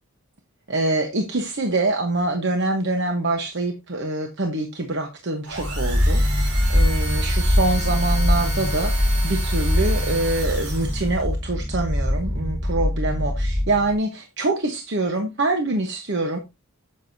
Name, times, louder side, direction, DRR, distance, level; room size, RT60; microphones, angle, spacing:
voice 1, 0.7-6.2 6.7-16.4, right 2 dB, 50° right, 1.0 m, -25 dB
sound 1, 5.4-11.2, right 3 dB, 85° right, 3.2 m, -33 dB
sound 2, 5.5-13.9, left 1 dB, ahead, 0.8 m, -22 dB
9.5 x 7.5 x 2.7 m
head